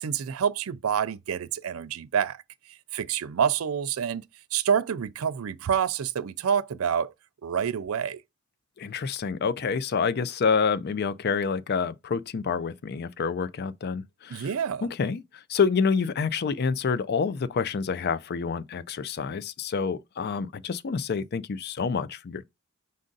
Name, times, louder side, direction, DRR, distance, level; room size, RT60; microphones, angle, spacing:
voice 1, 0.0-2.4 2.9-4.2 4.5-7.1 7.4-8.2 14.3-14.9, right 8 dB, 85° right, 0.4 m, -27 dB
voice 2, 8.8-14.5 14.8-22.4, left 5 dB, 50° left, 0.4 m, -28 dB
5.2 x 2.6 x 3.8 m
head